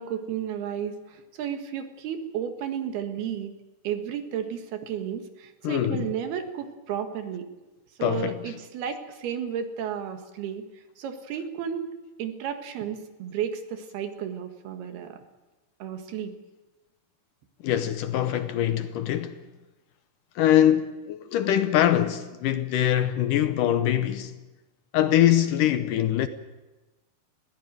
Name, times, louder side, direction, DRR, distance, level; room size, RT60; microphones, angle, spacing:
voice 1, 0.0-3.5 3.8-7.5 8.0-11.9 12.2-15.2 15.8-16.3, right 8 dB, 85° right, 3.6 m, -33 dB
voice 2, 5.6-6.1 8.0-8.5 17.6-19.4 20.4-24.3 24.9-26.3, left 11 dB, 70° left, 2.2 m, -23 dB
21.5 x 16.0 x 9.1 m
omnidirectional pair, 4.4 m